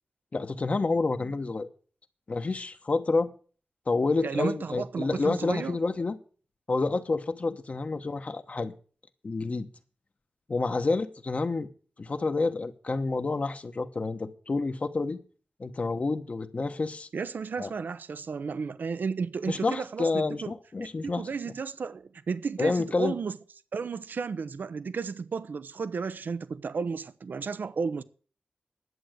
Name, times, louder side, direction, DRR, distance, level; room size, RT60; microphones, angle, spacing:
voice 1, 0.3-1.7 2.3-3.3 3.9-6.2 6.7-8.7 9.2-9.7 10.5-11.7 12.0-15.2 15.6-17.1 17.6-17.7 19.5-21.3 22.6-23.2, left 3 dB, 45° left, 1.1 m, -29 dB
voice 2, 4.2-5.8 17.1-20.5 21.0-23.4 23.7-28.0, right 5 dB, 70° right, 0.6 m, -33 dB
11.0 x 7.9 x 7.8 m
wide cardioid pair, 100°, 3 cm